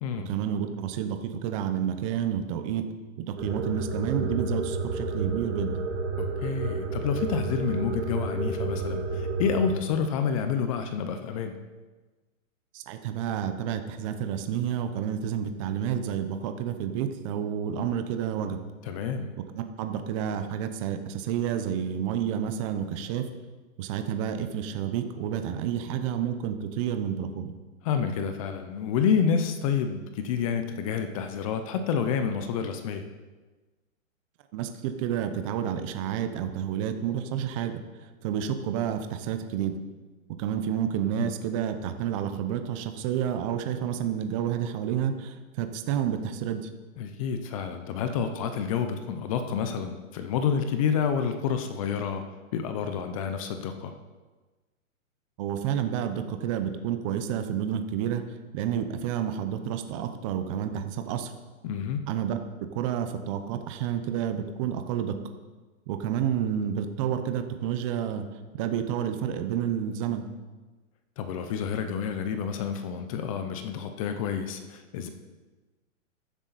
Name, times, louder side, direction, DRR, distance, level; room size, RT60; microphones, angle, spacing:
voice 1, 0.3-2.8 3.2-5.7 12.7-18.6 19.5-23.3 23.8-27.5 34.5-37.8 38.2-39.7 40.4-46.7 55.4-61.3 62.1-62.4 62.7-65.2 65.9-68.3 68.5-70.3, right 9 dB, 25° right, 7 dB, 0.7 m, -30 dB
sound 1, 3.4-9.7, right 3 dB, 60° right, 3.3 m, -31 dB
voice 2, 6.2-11.5 18.8-19.3 27.8-33.1 41.2-41.3 47.0-52.2 52.5-53.9 61.6-62.1 71.2-75.1, left 7 dB, 25° left, 7 dB, 0.7 m, -29 dB
14.0 x 10.0 x 4.1 m, 1.3 s
hypercardioid pair, 155°, 40 cm